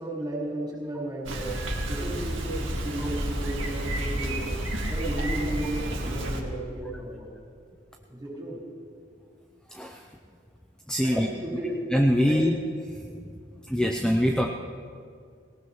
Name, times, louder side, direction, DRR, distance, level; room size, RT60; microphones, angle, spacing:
voice 1, 0.0-1.6 1.9-4.6 4.9-7.3 8.1-8.6 11.0-11.9 12.2-12.5, right 1 dB, 20° right, -6 dB, 4.7 m, -34 dB
Bicycle, 1.3-6.4, right 1 dB, 85° right, 1.9 m, -30 dB
voice 2, 10.9-11.3 11.9-12.5 13.2-13.3 13.7-14.5, equal, 5° left, 2 dB, 0.5 m, -23 dB
19.0 x 18.0 x 3.1 m, 2.1 s
head